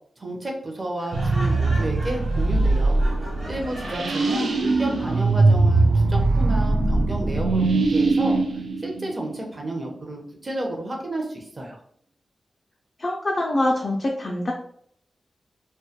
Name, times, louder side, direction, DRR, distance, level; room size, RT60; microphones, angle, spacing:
voice 1, 0.2-3.0 3.5-8.4 8.8-11.8, right 1 dB, 30° right, 0 dB, 0.5 m, -31 dB
Laughter, 1.0-5.0, equal, 65° right, 1.0 m, -39 dB
sound 1, 1.1-9.7, right 3 dB, 85° right, 0.3 m, -21 dB
voice 2, 3.8-4.5 4.9-5.3 13.0-14.5, left 1 dB, 35° left, -1 dB, 0.3 m, -26 dB
2.2 x 2.1 x 2.7 m, 0.64 s
wide cardioid pair, 135°, 0 cm